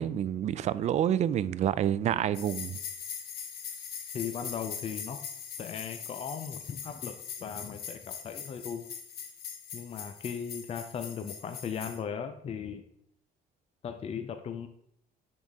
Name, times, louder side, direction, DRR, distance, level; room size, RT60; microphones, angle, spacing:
voice 1, 0.0-2.8, right 10 dB, 45° right, 0.4 m, -28 dB
sound 1, 2.3-12.0, left 7 dB, 65° left, 1.2 m, -41 dB
voice 2, 4.1-5.2 5.6-8.9 9.7-12.8 13.8-14.7, left 7 dB, 35° left, 0.5 m, -37 dB
10.5 x 4.0 x 3.6 m
cardioid pair, 110°, 17 cm